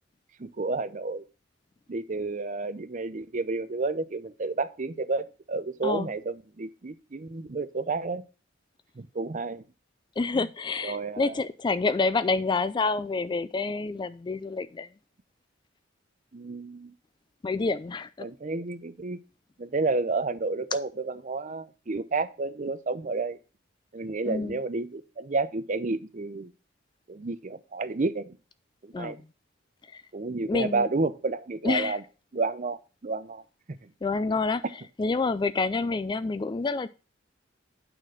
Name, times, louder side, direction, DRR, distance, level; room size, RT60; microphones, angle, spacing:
voice 1, 0.4-1.2 1.9-8.2 9.0-9.6 10.3-10.5 10.8-11.3 16.3-16.9 18.2-19.2 19.6-23.4 23.9-26.5 27.1-28.4 28.8-29.2 30.1-32.0 32.3-33.4 33.8-33.9, right 3 dB, 40° right, 0.6 m, -31 dB
voice 2, 10.2-14.9 17.4-18.3 24.2-24.6 28.9-29.3 29.9-30.0 30.5-30.9 31.6-32.0 34.0-34.6 35.0-36.9, left 3 dB, 25° left, 0.3 m, -28 dB
8.9 x 4.2 x 6.2 m
head